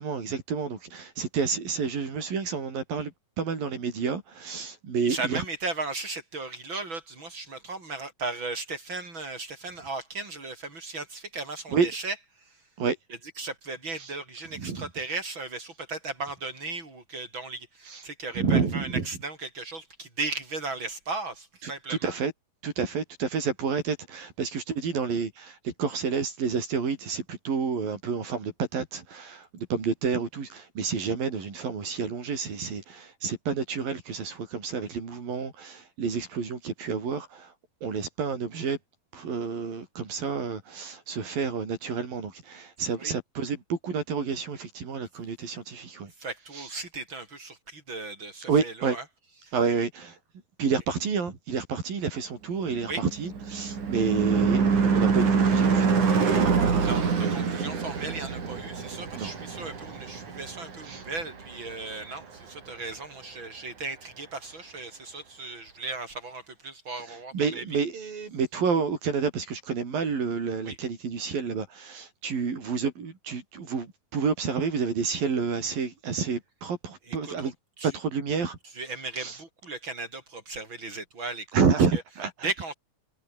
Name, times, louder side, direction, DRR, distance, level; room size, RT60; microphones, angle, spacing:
voice 1, 0.0-3.1 3.4-5.4 11.7-11.9 12.8-13.0 14.0-14.1 14.5-14.9 17.9-18.0 18.3-19.1 21.6-22.3 22.6-37.5 37.8-38.8 39.1-46.1 46.5-46.7 48.5-49.0 49.5-50.2 50.6-56.8 57.2-57.4 59.1-59.3 60.8-61.0 67.1-77.5 77.8-78.6 79.2-79.4 81.5-82.5, right 5 dB, 80° right, 6.4 m, -29 dB
voice 2, 5.0-12.1 13.4-22.1 43.0-43.1 46.2-49.0 49.4-49.5 52.8-53.0 56.8-67.6 70.6-70.8 77.1-77.5 77.8-77.9 78.7-81.6 81.9-82.0 82.4-82.7, right 3 dB, 30° right, 8.2 m, -36 dB
Car passing by / Truck / Engine, 52.8-61.5, right 5 dB, 60° right, 5.6 m, -25 dB
omnidirectional pair, 4.0 m